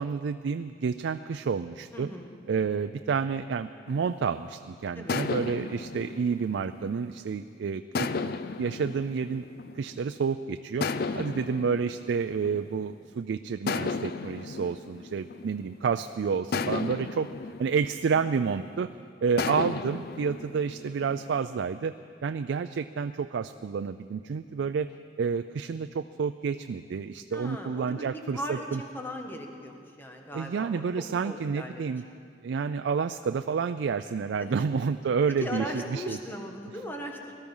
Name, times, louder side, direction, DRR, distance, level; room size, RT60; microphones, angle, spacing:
voice 1, 0.0-2.1 2.5-9.5 9.7-10.9 11.1-17.3 17.6-18.9 19.2-21.9 22.2-24.9 25.2-28.8 30.3-32.0 32.4-35.7 35.9-36.2, right 6 dB, 85° right, 10 dB, 0.4 m, -29 dB
voice 2, 1.9-2.3 4.9-5.2 11.1-11.4 27.3-30.8 31.2-31.8 34.4-34.5 35.4-37.3, equal, 10° left, 2 dB, 1.4 m, -38 dB
sound 1, 3.9-4.5 5.1-7.3 7.9-10.1 10.8-13.1 13.7-15.9 16.5-18.8 19.4-21.6, left 4 dB, 55° left, 0.5 m, -35 dB
18.5 x 13.0 x 5.5 m, 2.2 s
head